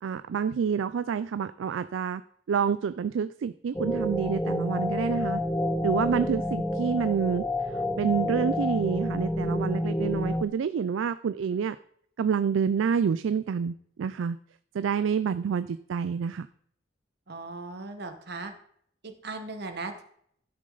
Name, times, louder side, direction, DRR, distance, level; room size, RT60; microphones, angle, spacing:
voice 1, 0.0-2.2 2.5-5.4 5.8-11.8 12.2-14.4 14.7-16.5, right 6 dB, 80° right, 13 dB, 0.3 m, -28 dB
sound 1, 3.7-10.4, left 1 dB, 10° left, 0.4 m, -29 dB
voice 2, 17.3-18.5 19.0-20.0, right 3 dB, 60° right, 7 dB, 1.3 m, -38 dB
12.5 x 6.5 x 3.9 m, 0.65 s
head